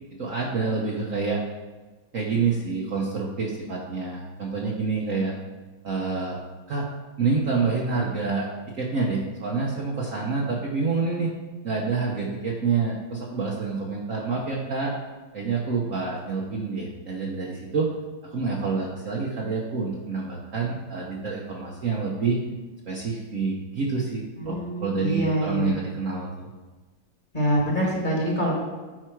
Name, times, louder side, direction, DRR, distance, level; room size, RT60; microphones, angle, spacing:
voice 1, 0.2-1.4 2.1-5.3 5.8-6.4 6.7-6.9 7.2-8.5 8.7-11.3 11.6-14.9 15.3-17.9 18.2-22.4 22.9-26.5, right 4 dB, 50° right, -3 dB, 1.1 m, -27 dB
voice 2, 24.4-25.8 27.3-28.5, equal, 25° left, -3 dB, 2.0 m, -25 dB
9.2 x 5.0 x 4.6 m, 1.3 s
omnidirectional pair, 2.1 m